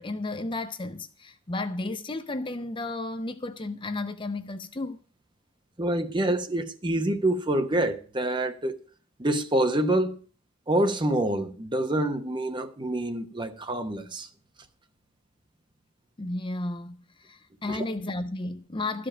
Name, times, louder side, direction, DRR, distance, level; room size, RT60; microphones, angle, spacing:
voice 1, 0.0-5.0 16.2-19.1, left 2 dB, 25° left, 0.6 m, -33 dB
voice 2, 5.8-8.7 9.2-10.2 10.7-14.3 17.7-17.8, right 1 dB, 25° right, 1.0 m, -26 dB
13.0 x 5.2 x 8.6 m
head